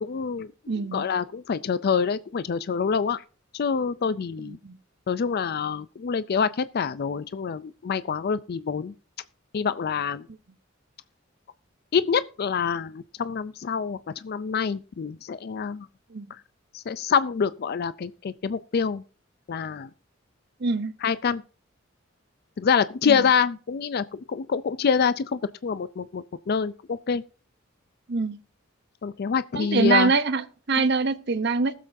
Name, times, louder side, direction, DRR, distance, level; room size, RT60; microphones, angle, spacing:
voice 1, 0.0-3.2 3.5-4.6 5.1-8.9 9.5-10.3 11.9-15.9 16.3-16.4 16.7-19.0 19.5-19.9 21.0-21.4 22.6-27.2 29.0-30.1 30.7-30.8, left 6 dB, 55° left, 0.4 m, -26 dB
voice 2, 0.7-1.1 4.5-4.8 16.1-16.3 20.6-20.9 23.1-23.2 28.1-28.4 29.6-31.7, right 4 dB, 60° right, 0.8 m, -24 dB
20.0 x 7.5 x 2.6 m
head